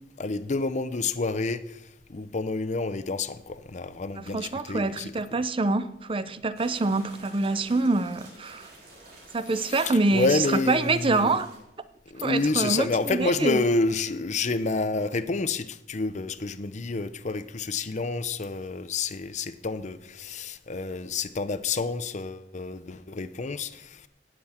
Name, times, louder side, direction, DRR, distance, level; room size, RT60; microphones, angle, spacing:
voice 1, 0.2-1.6 2.1-5.1 9.6-11.3 12.1-23.8, left 3 dB, 40° left, 0.6 m, -29 dB
voice 2, 4.2-8.7 9.3-11.5 12.2-13.6, right 3 dB, 30° right, 0.6 m, -26 dB
sound 1, 6.5-11.6, right 2 dB, 60° right, 4.3 m, -50 dB
18.0 x 7.8 x 4.4 m
head